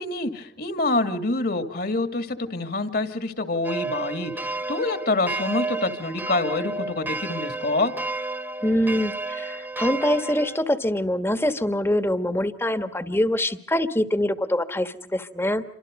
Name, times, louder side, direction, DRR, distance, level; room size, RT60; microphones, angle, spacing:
voice 1, 0.0-7.9, left 2 dB, 60° left, 8 dB, 2.5 m, -26 dB
sound 1, 3.6-10.6, right 2 dB, 10° right, 1.3 m, -31 dB
voice 2, 8.6-15.6, left 1 dB, 15° left, 10 dB, 1.3 m, -24 dB
28.5 x 25.5 x 5.3 m, 0.64 s
head